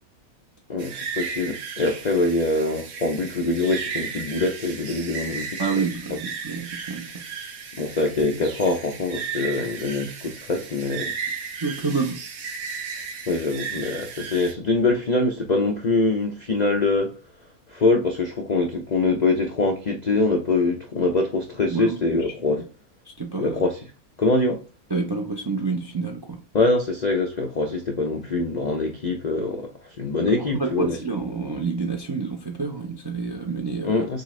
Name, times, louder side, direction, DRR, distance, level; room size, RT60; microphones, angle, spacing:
voice 1, 0.7-5.6 6.1-6.2 7.8-11.1 13.3-17.1 17.7-22.6 23.4-23.8 24.2-24.6 26.5-29.7 30.0-31.0 33.8-34.2, left 3 dB, 60° left, 0.4 m, -24 dB
sound 1, 0.8-14.5, right 5 dB, 70° right, 1.3 m, -35 dB
voice 2, 5.6-7.2 11.6-12.2 21.7-22.6 23.2-23.6 24.9-26.4 30.3-34.0, right 4 dB, 40° right, 0.3 m, -28 dB
6.6 x 2.5 x 3.2 m
omnidirectional pair, 1.6 m